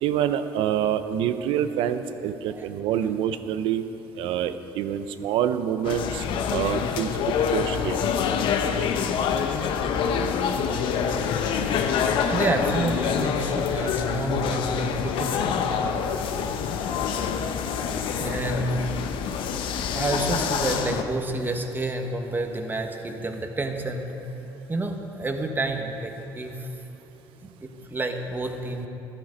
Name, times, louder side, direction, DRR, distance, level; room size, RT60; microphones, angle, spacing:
voice 1, 0.0-3.8 4.2-6.2 6.5-7.1 7.5-8.0, right 10 dB, 75° right, 11 dB, 0.6 m, -26 dB
sound 1, 5.8-21.0, left 7 dB, 70° left, 0.8 m, -26 dB
voice 2, 8.5-9.6 11.7-12.0 12.3-15.7 16.4-16.5 17.8-19.5 19.8-24.1 24.7-26.7 27.4-28.9, right 2 dB, 20° right, 4 dB, 1.3 m, -30 dB
11.5 x 10.5 x 5.2 m, 2.9 s
supercardioid pair, 80°, 9 cm